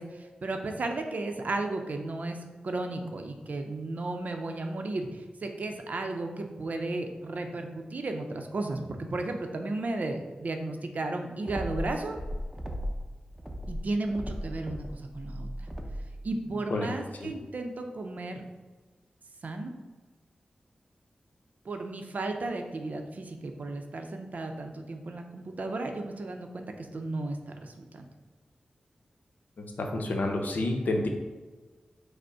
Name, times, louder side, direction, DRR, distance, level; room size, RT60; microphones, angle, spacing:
voice 1, 0.0-2.4 2.6-12.2 13.7-15.5 16.2-18.5 19.4-19.7 21.6-28.0, right 2 dB, 65° right, 5 dB, 0.6 m, -34 dB
sound 1, 11.4-13.1 13.4-16.1, equal, 10° right, 0.6 m, -36 dB
voice 2, 29.6-31.1, left 2 dB, 75° left, 2 dB, 0.7 m, -29 dB
5.0 x 2.1 x 4.7 m, 1.3 s
cardioid pair, 60°, 3 cm